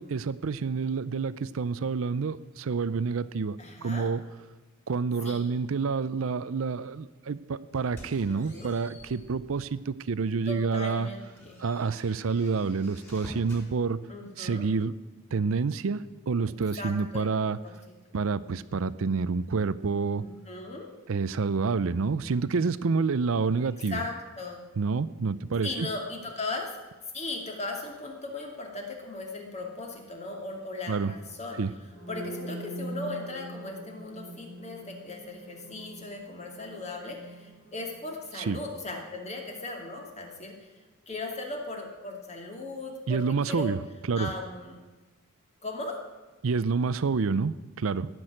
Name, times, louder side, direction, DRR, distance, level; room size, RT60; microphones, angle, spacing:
voice 1, 0.0-3.6 3.8-4.2 4.9-11.1 11.6-14.0 14.4-14.9 15.3-17.6 18.1-20.2 21.1-24.0 24.8-25.9 30.9-31.1 31.6-31.7 38.5-38.6 43.1-43.8 44.1-44.3 46.4-48.1, right 4 dB, 70° right, 16 dB, 0.5 m, -28 dB
voice 2, 3.6-4.1 5.2-5.4 8.3-8.8 10.5-11.6 14.1-14.7 16.8-17.8 20.2-20.9 23.9-24.6 25.6-26.7 27.1-43.7 44.1-44.7 45.6-46.0, left 2 dB, 30° left, 1 dB, 2.6 m, -38 dB
sound 1, 7.7-9.8 10.3-10.4 10.9-13.7, equal, 10° left, 5.9 m, -49 dB
sound 2, 31.8-39.7, right 1 dB, 70° left, 3.9 m, -43 dB
17.5 x 6.2 x 10.0 m, 1.2 s
head